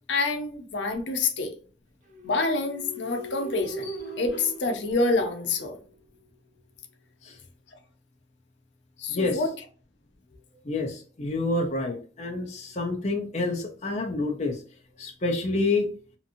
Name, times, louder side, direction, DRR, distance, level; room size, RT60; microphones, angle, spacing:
voice 1, 0.1-1.5 2.2-5.8 9.0-9.5, left 3 dB, 85° left, 0.6 m, -27 dB
sound 1, 2.1-5.9, right 1 dB, 45° right, 0.8 m, -39 dB
voice 2, 9.1-9.4 10.6-14.6 15.0-15.9, left 2 dB, 40° left, 0.5 m, -28 dB
2.9 x 2.5 x 2.5 m
head